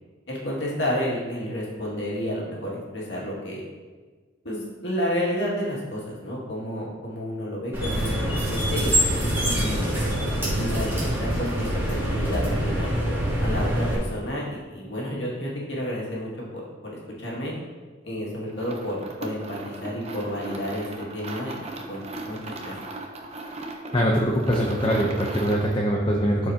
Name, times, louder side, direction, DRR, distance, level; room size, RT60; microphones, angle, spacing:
voice 1, 0.3-3.6 4.4-10.0 10.4-12.9 13.4-17.5 18.0-22.7, equal, 70° left, -4 dB, 2.2 m, -31 dB
Elevator Doors Closing with Squeak, 7.7-13.9, equal, 15° right, 2.4 m, -25 dB
sound 1, 18.5-25.8, right 2 dB, 35° right, 0.8 m, -38 dB
voice 2, 23.9-26.5, equal, 25° left, -1 dB, 0.7 m, -23 dB
12.0 x 4.8 x 2.9 m, 1.4 s
head